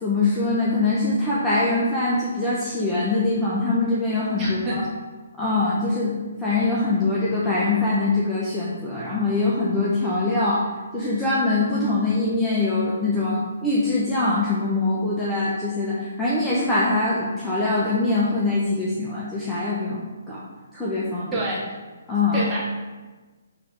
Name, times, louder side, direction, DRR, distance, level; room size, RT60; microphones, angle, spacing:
voice 1, 0.0-4.8 5.4-6.1 6.4-10.7 10.9-20.4 20.7-21.5 22.1-22.4, left 2 dB, 10° left, -8 dB, 0.9 m, -23 dB
voice 2, 4.4-4.9 21.3-21.6 22.3-22.6, right 2 dB, 15° right, -7 dB, 2.0 m, -27 dB
5.9 x 3.4 x 5.0 m, 1.3 s
hypercardioid pair, 145°, 0 cm